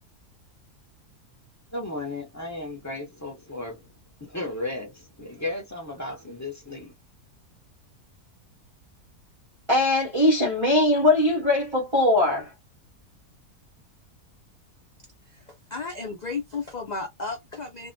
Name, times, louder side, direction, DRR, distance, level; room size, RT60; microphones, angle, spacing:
voice 1, 1.7-3.9 4.2-6.9, left 2 dB, 15° left, 0.6 m, -34 dB
voice 2, 9.7-12.5, left 2 dB, 30° right, 0.6 m, -21 dB
voice 3, 15.3-17.9, left 4 dB, 80° left, 0.3 m, -34 dB
2.5 x 2.1 x 2.6 m
omnidirectional pair, 1.7 m